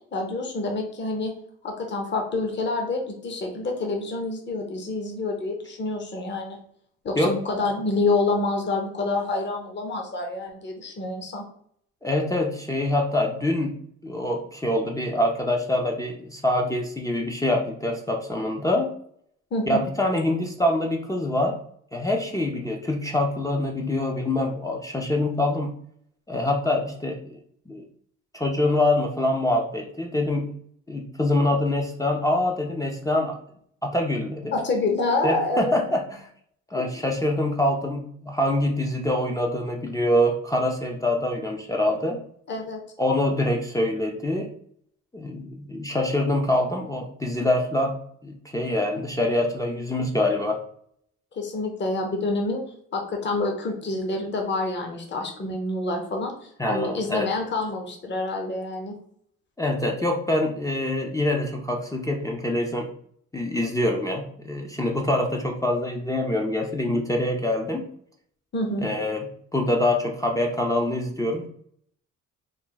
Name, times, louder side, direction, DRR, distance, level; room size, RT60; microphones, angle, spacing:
voice 1, 0.1-1.3 1.6-6.6 7.0-11.4 19.5-19.8 34.5-35.7 36.8-36.9 42.5-42.8 51.3-52.6 52.9-58.9 68.5-68.9, left 2 dB, 35° left, 2 dB, 0.9 m, -27 dB
voice 2, 12.0-13.8 14.0-18.9 19.7-21.6 21.9-25.7 26.3-27.4 27.7-27.8 28.3-30.5 30.9-33.4 33.8-34.5 35.2-36.3 36.7-42.2 43.0-44.5 45.1-48.0 48.2-50.6 56.6-57.3 59.6-62.9 63.3-67.9 68.8-71.5, left 1 dB, 10° left, 0 dB, 0.5 m, -25 dB
3.4 x 2.2 x 3.9 m, 0.64 s
cardioid pair, 90°, 30 cm